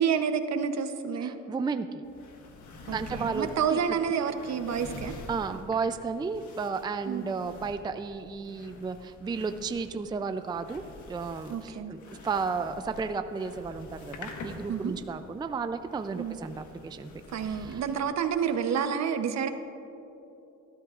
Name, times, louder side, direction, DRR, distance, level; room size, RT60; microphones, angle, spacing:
voice 1, 0.0-1.3 2.9-5.2 7.1-7.2 11.5-11.9 14.7-14.9 16.1-16.4 17.3-19.5, right 7 dB, 60° right, 8 dB, 0.9 m, -29 dB
voice 2, 1.2-2.0 2.9-3.8 5.3-17.1 17.4-17.8, right 5 dB, 15° right, 9 dB, 0.4 m, -33 dB
sound 1, 2.0-18.0, left 3 dB, 75° left, 1.5 m, -47 dB
18.5 x 12.5 x 2.5 m, 3.0 s
cardioid pair, 90°, 30 cm